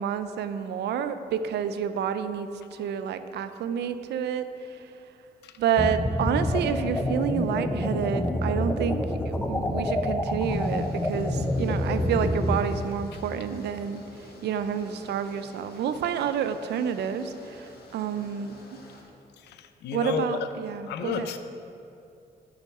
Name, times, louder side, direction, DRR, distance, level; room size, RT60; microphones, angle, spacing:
voice 1, 0.0-4.5 5.6-9.0 9.3-14.0 14.4-18.5 19.9-21.3, right 8 dB, 80° right, 10 dB, 0.5 m, -29 dB
sound 1, 5.8-12.6, left 1 dB, 15° left, 0.7 m, -27 dB
sound 2, 10.4-19.0, left 2 dB, 70° left, 1.5 m, -50 dB
voice 2, 19.4-20.3 20.9-21.4, left 8 dB, 90° left, 9 dB, 0.5 m, -33 dB
6.5 x 6.0 x 5.7 m, 2.7 s
cardioid pair, 65°, 17 cm